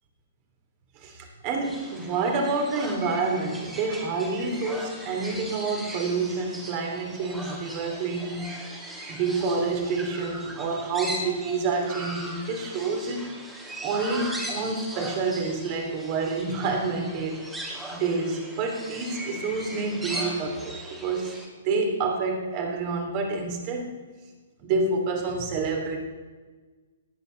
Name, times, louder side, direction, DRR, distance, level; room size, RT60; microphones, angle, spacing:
voice 1, 0.9-13.4 13.8-17.5 17.9-21.3 21.6-24.0 24.6-26.0, right 3 dB, 35° right, 2 dB, 3.1 m, -28 dB
sound 1, 1.6-21.5, right 1 dB, 10° right, 2.4 m, -39 dB
18.5 x 8.7 x 4.0 m, 1.3 s
figure-of-eight pair, 125°, 0 cm